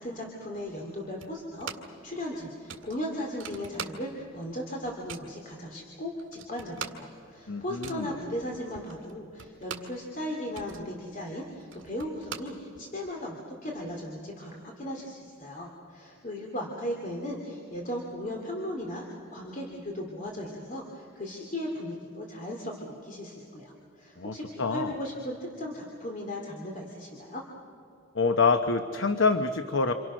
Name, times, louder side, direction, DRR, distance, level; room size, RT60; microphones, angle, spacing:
voice 1, 0.0-27.4, left 1 dB, 40° left, 0 dB, 2.7 m, -37 dB
sound 1, 1.2-2.0 2.3-2.4 2.7-4.4 4.6-5.4 5.9-6.0 6.2-10.0 10.3-13.1, right 6 dB, 75° right, 2.0 m, -43 dB
voice 2, 7.5-8.1 24.2-24.9 28.1-29.9, left 4 dB, 75° left, 8 dB, 1.0 m, -26 dB
28.0 x 27.5 x 6.3 m, 2.6 s
head